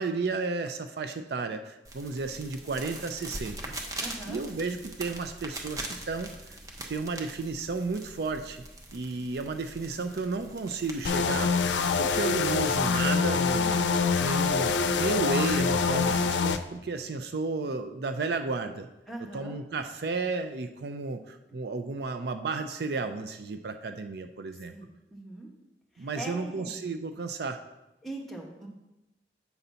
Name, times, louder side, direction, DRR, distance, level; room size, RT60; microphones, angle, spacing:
voice 1, 0.0-3.7 4.3-6.6 6.9-8.6 8.9-11.5 12.0-18.9 19.3-24.7 26.0-27.6, right 3 dB, 65° right, 8 dB, 0.4 m, -33 dB
sound 1, 1.8-12.7, right 1 dB, 20° right, 0.8 m, -42 dB
voice 2, 4.0-4.4 9.1-9.2 19.1-19.6 24.7-25.5 25.9-26.8 28.0-28.7, right 1 dB, ahead, -2 dB, 1.2 m, -41 dB
sound 2, 11.0-16.6, left 5 dB, 85° left, 0.5 m, -25 dB
8.3 x 3.9 x 5.6 m, 0.94 s
head